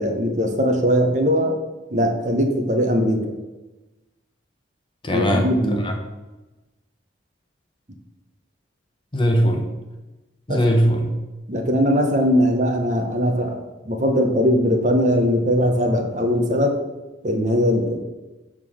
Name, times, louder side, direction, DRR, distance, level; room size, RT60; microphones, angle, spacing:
voice 1, 0.0-1.5 1.9-3.2 5.1-5.8 10.5-10.6 11.5-16.8 17.2-18.0, equal, 40° right, 3 dB, 0.8 m, -20 dB
voice 2, 5.0-6.0 9.1-9.6 10.5-11.1, equal, 25° left, 2 dB, 0.9 m, -20 dB
6.6 x 3.7 x 6.2 m, 1.1 s
head